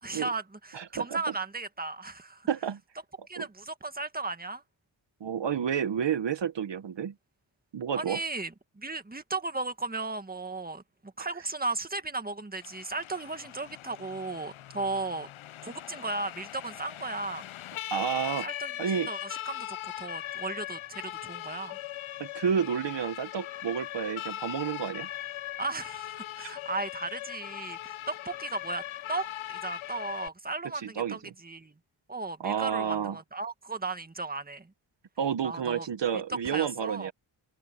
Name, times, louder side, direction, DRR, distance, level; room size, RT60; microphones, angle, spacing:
voice 1, 0.0-2.5 3.3-4.6 7.9-15.3 15.6-17.5 18.4-18.7 19.1-21.8 25.6-31.8 32.1-34.7 35.4-35.9 36.3-37.1, right 3 dB, 20° right, 1.8 m, -36 dB
voice 2, 0.7-1.2 2.5-2.8 3.4-3.5 5.2-7.1 7.7-8.2 17.9-18.5 18.8-19.1 22.2-25.1 26.4-26.5 31.0-31.2 32.4-33.2 35.2-37.1, right 8 dB, 65° right, 1.3 m, -30 dB
Siren, 12.6-30.3, left 13 dB, 85° left, 0.7 m, -40 dB
open air
cardioid pair, 70°, 47 cm